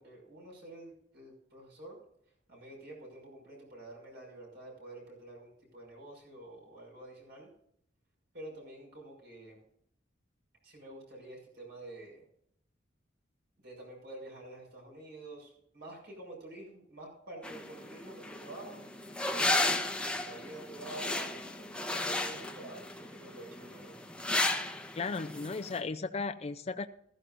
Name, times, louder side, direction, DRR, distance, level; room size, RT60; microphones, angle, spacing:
voice 1, 0.0-2.0 2.5-7.5 8.3-9.6 10.6-12.2 13.6-18.8 19.3-24.0, right 1 dB, 60° right, 0 dB, 6.0 m, -48 dB
sound 1, 17.4-25.8, left 2 dB, 5° left, 0.9 m, -34 dB
voice 2, 24.9-26.9, left 4 dB, 35° left, 8 dB, 0.5 m, -35 dB
15.5 x 14.0 x 2.6 m, 0.71 s
head